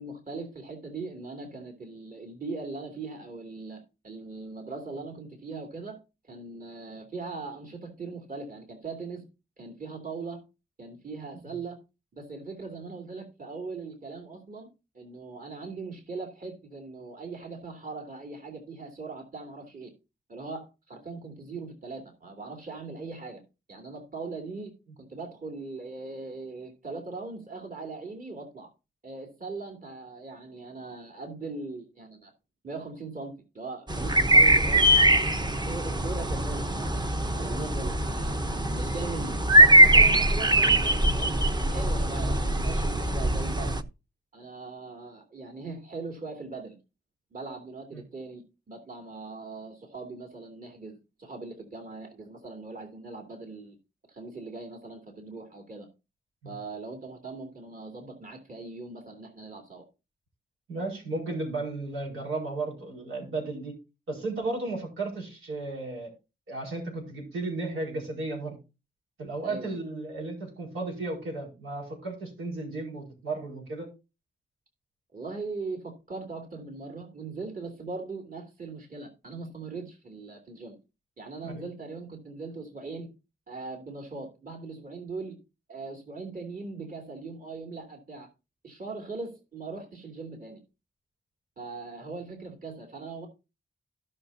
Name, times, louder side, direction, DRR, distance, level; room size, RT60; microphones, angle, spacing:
voice 1, 0.0-6.0 6.2-9.2 9.6-10.4 10.8-11.8 12.1-14.7 14.9-19.9 20.3-23.4 23.7-24.7 25.0-28.7 29.0-32.3 32.6-34.9 35.4-41.3 41.7-43.8 44.3-46.7 47.3-53.8 54.1-55.9 56.4-59.8 69.4-69.8 75.1-80.8 81.2-83.1 83.5-85.4 85.7-88.3 88.6-90.6 91.6-93.3, right 3 dB, 45° right, 2 dB, 2.7 m, -40 dB
sound 1, 33.9-43.8, right 1 dB, 20° right, 0.9 m, -22 dB
voice 2, 35.1-35.5 47.9-48.0 56.4-56.5 60.7-63.7 64.1-66.1 66.5-68.6 69.2-73.9 81.4-81.6, right 2 dB, 90° right, -1 dB, 4.9 m, -34 dB
16.5 x 6.0 x 2.7 m, 0.28 s
cardioid pair, 65°, 20 cm